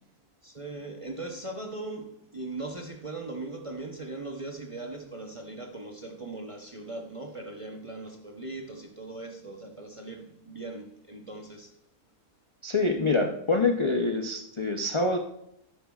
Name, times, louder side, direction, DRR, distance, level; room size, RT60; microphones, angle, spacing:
voice 1, 0.4-11.7, right 2 dB, 30° right, 0.6 m, -39 dB
voice 2, 12.6-15.2, left 3 dB, 45° left, 0.3 m, -26 dB
12.0 x 9.8 x 2.4 m
omnidirectional pair, 1.7 m